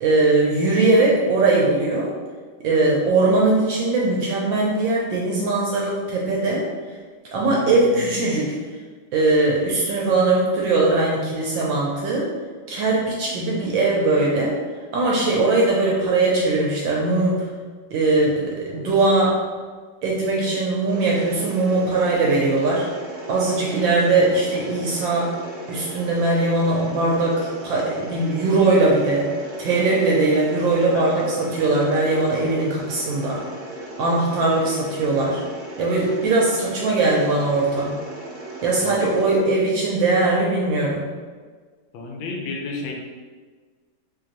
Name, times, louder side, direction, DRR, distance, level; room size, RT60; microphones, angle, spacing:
voice 1, 0.0-2.1 2.6-6.6 7.3-8.6 9.1-12.3 12.7-14.5 14.9-17.4 17.9-19.3 20.0-22.9 23.3-25.3 25.7-29.3 29.6-33.4 34.0-35.4 35.8-38.0 38.6-41.1, right 2 dB, 75° right, -3 dB, 1.2 m, -20 dB
voice 2, 7.4-8.2 30.9-31.7 38.8-39.1 41.9-42.9, left 2 dB, 75° left, 0 dB, 1.4 m, -33 dB
Mechanisms, 20.9-39.4, right 2 dB, 40° right, 0.8 m, -37 dB
3.8 x 2.9 x 2.9 m, 1.5 s
omnidirectional pair, 2.3 m